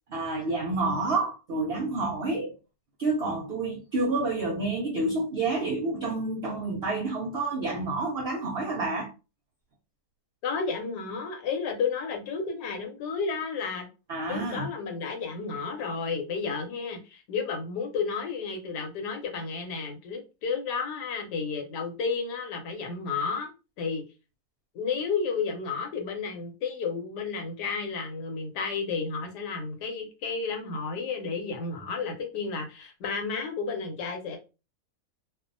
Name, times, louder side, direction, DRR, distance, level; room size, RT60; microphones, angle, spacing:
voice 1, 0.1-2.5 3.0-9.1 14.1-14.7, right 3 dB, 80° right, 0.5 m, -29 dB
voice 2, 10.4-13.9 14.3-23.5 23.8-24.0 24.7-34.4, left 5 dB, 90° left, 1.3 m, -32 dB
2.6 x 2.4 x 2.5 m
omnidirectional pair, 1.7 m